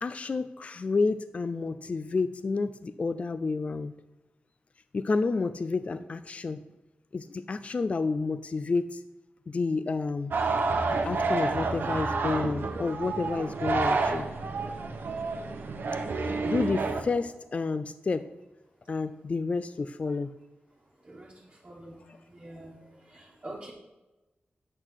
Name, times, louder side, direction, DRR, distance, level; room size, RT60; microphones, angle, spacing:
voice 1, 0.0-4.0 4.9-6.6 7.1-9.0 9.5-10.4 10.9-14.3 16.5-18.3 18.9-20.3 22.1-22.2, left 4 dB, 35° left, 12 dB, 0.3 m, -30 dB
sound 1, 10.3-17.0, right 3 dB, 70° right, 1.1 m, -29 dB
voice 2, 21.6-22.0 22.3-22.8 23.1-23.7, right 1 dB, 25° right, -4 dB, 1.4 m, -44 dB
8.1 x 5.7 x 6.4 m, 1.1 s
wide cardioid pair, 160°, 4 cm